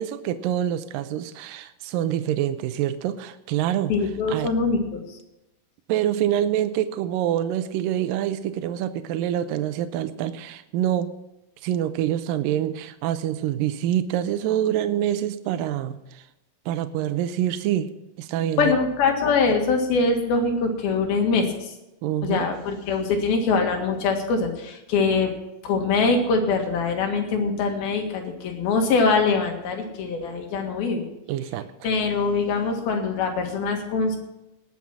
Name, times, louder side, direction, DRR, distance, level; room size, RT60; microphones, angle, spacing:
voice 1, 0.0-3.9 4.3-4.5 5.9-11.1 11.6-16.2 16.7-17.9 18.2-18.7 19.5-19.6 22.0-22.5 31.3-31.9, right 11 dB, 80° right, 10 dB, 2.3 m, -26 dB
voice 2, 3.9-5.2 18.6-21.7 22.2-25.4 25.6-31.1 31.8-34.2, left 4 dB, 85° left, 3 dB, 3.8 m, -23 dB
19.0 x 7.2 x 6.1 m, 0.91 s
omnidirectional pair, 4.2 m